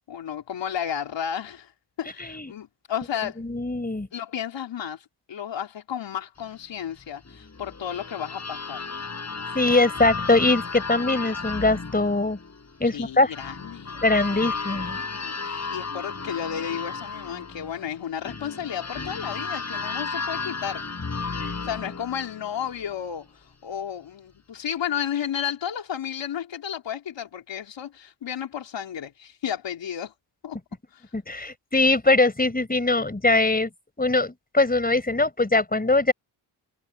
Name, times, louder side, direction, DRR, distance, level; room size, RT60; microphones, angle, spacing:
voice 1, 0.0-1.7 2.0-3.4 4.1-8.8 12.9-14.4 14.7-20.8 21.6-23.3 23.6-30.1 30.4-30.6 30.9-31.0, left 9 dB, 75° left, 3.6 m, -33 dB
voice 2, 3.4-4.1 9.5-12.4 12.8-13.3 14.0-15.0 31.1-33.7 34.0-36.1, left 2 dB, 20° left, 4.5 m, -22 dB
sound 1, 7.3-22.9, left 4 dB, 35° left, 6.0 m, -34 dB
cardioid pair, 65°, 45 cm